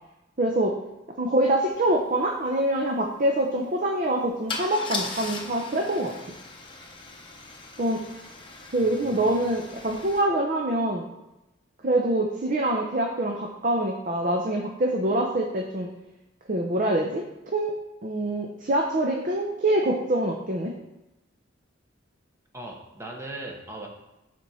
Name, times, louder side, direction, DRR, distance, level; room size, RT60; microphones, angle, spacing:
voice 1, 0.4-0.8 1.2-6.1 7.8-8.0 8.7-11.1 11.8-15.9 16.5-17.2 17.5-20.7, right 1 dB, 45° right, 1 dB, 0.7 m, -25 dB
Car / Engine starting / Idling, 1.9-2.0 2.2-2.5 4.5-10.2, left 3 dB, 25° left, 1.0 m, -38 dB
voice 2, 22.5-23.9, right 2 dB, 15° right, 0 dB, 1.1 m, -38 dB
7.4 x 4.5 x 5.5 m, 0.97 s
head